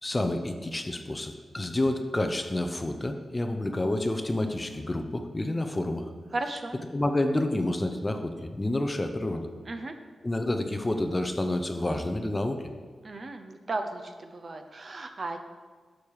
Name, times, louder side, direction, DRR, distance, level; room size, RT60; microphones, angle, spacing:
voice 1, 0.0-6.1 6.9-9.5 10.2-12.7, left 1 dB, 15° left, 6 dB, 0.6 m, -29 dB
voice 2, 6.3-6.8 9.7-9.9 13.0-15.4, right 2 dB, 35° right, 6 dB, 0.7 m, -35 dB
11.5 x 7.2 x 4.7 m, 1.5 s
wide cardioid pair, 170°, 0 cm